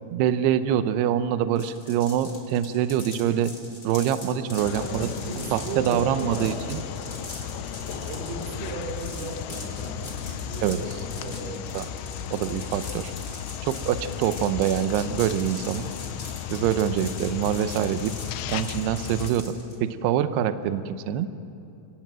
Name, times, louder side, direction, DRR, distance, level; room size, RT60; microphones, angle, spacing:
voice 1, 0.1-3.5 3.8-5.1 5.5-6.8 10.6-10.8 11.7-11.9 12.3-13.1 13.6-15.9 16.5-18.1 18.5-19.5 19.8-21.3, right 10 dB, 85° right, 11 dB, 2.3 m, -25 dB
sound 1, 1.5-19.7, left 2 dB, 20° left, 3.6 m, -42 dB
sound 2, 4.6-19.3, left 9 dB, 80° left, 3.0 m, -35 dB
voice 2, 4.8-6.6 8.0-11.7, right 2 dB, 65° right, 2 dB, 5.6 m, -36 dB
Thunder / Rain, 5.8-19.1, left 4 dB, 55° left, 2.7 m, -48 dB
30.0 x 19.0 x 7.6 m, 2.7 s
omnidirectional pair, 5.8 m